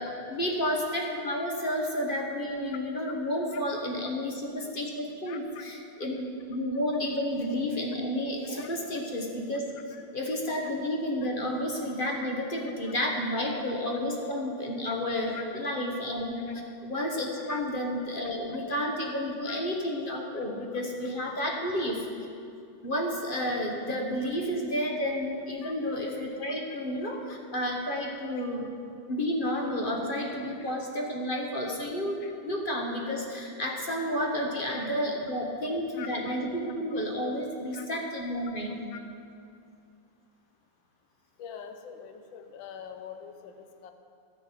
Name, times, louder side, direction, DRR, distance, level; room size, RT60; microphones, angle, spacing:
voice 1, 0.0-9.7 10.1-16.4 16.8-22.1 22.8-28.7 29.1-38.8, left 1 dB, 35° left, 0 dB, 1.1 m, -31 dB
voice 2, 3.5-3.8 4.6-4.7 5.3-5.7 8.6-8.7 9.7-10.0 11.2-11.3 12.8-12.9 14.9-15.0 15.3-15.4 16.5-16.6 17.4-17.6 19.4-19.6 25.6-25.7 27.3-27.4 32.2-32.3 34.7-34.9 35.9-36.3 37.7-38.0 38.9-39.0 41.4-43.9, left 8 dB, 75° left, 7 dB, 1.6 m, -45 dB
12.5 x 6.0 x 8.0 m, 2.4 s
omnidirectional pair, 2.1 m